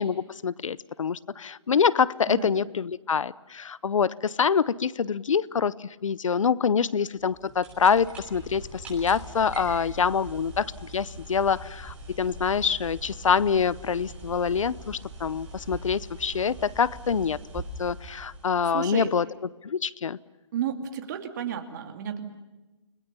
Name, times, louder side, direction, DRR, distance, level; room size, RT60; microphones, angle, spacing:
voice 1, 0.0-19.2 19.6-20.2, left 6 dB, 85° left, 21 dB, 0.8 m, -26 dB
voice 2, 2.3-2.6 18.6-19.1 20.5-22.3, right 8 dB, 35° right, 5 dB, 2.6 m, -32 dB
sound 1, 7.2-19.0, right 2 dB, 10° right, 7.9 m, -42 dB
30.0 x 21.0 x 6.9 m, 1.1 s
hypercardioid pair, 160°, 16 cm